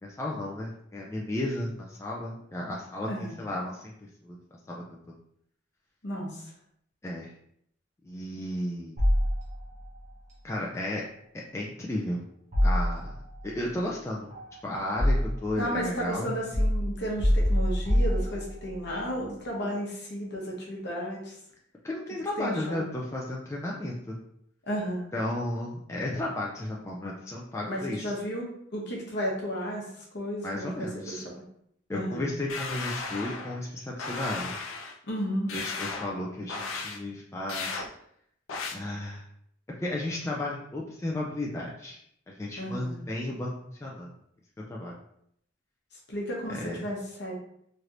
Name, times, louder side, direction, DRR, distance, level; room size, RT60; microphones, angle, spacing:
voice 1, 0.0-3.9 4.2-4.4 4.7-5.1 7.0-7.3 8.0-9.0 10.4-11.0 11.5-12.2 12.6-13.1 13.4-14.3 14.6-16.3 21.8-24.2 25.1-28.1 30.4-31.2 31.9-34.5 35.5-37.8 38.7-39.2 39.8-42.0 42.3-43.5 43.8-44.1 44.7-45.0 46.5-46.8, left 1 dB, 15° left, -3 dB, 0.3 m, -33 dB
voice 2, 6.0-6.5 15.6-21.4 22.4-22.8 24.7-25.1 27.7-28.5 28.7-31.5 31.9-32.3 35.1-35.5 42.6-43.0 46.1-47.4, equal, 60° left, -2 dB, 0.9 m, -33 dB
sound 1, 9.0-9.9 12.5-13.4 14.3-15.6 16.5-18.8, equal, 35° right, 0.9 m, -25 dB
sound 2, 32.5-33.6 34.0-35.0 35.5-36.1 36.5-37.0 37.5-37.9 38.5-38.7, left 4 dB, 90° left, 0.4 m, -35 dB
3.2 x 2.9 x 2.5 m, 0.71 s
head